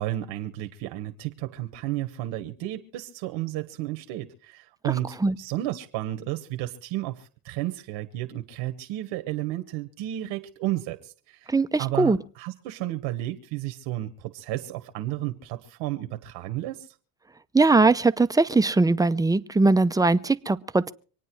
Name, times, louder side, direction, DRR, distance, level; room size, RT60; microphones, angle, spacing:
voice 1, 0.0-11.5 11.8-16.9, right 15 dB, 75° right, 1.4 m, -32 dB
voice 2, 11.5-12.2 17.5-20.9, right 3 dB, 10° right, 0.7 m, -20 dB
25.0 x 9.3 x 4.6 m
supercardioid pair, 85°, 43 cm